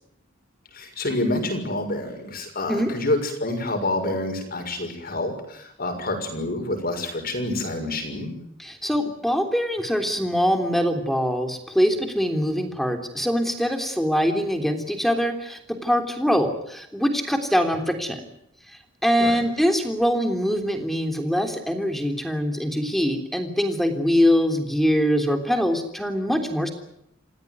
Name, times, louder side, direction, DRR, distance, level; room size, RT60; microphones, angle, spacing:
voice 1, 0.7-8.4 19.2-19.4, left 2 dB, 50° left, 6 dB, 6.4 m, -28 dB
voice 2, 8.6-18.2 18.7-26.7, equal, ahead, 5 dB, 3.4 m, -23 dB
28.0 x 16.5 x 9.5 m, 0.74 s
head